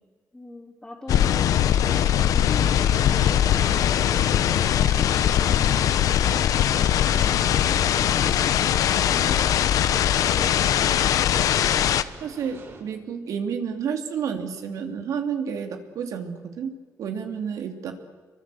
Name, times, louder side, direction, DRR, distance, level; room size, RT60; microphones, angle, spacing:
voice 1, 0.3-1.5 1.8-9.5 9.9-10.9, left 1 dB, 10° left, -4 dB, 3.7 m, -41 dB
sound 1, 1.1-12.0, left 10 dB, 80° left, 1.0 m, -21 dB
sound 2, 3.0-12.8, right 3 dB, 50° right, 6.5 m, -44 dB
voice 2, 12.2-16.7 17.0-17.9, right 7 dB, 75° right, 5 dB, 3.1 m, -30 dB
27.0 x 23.5 x 8.0 m, 1.4 s
cardioid pair, 135°, 6 cm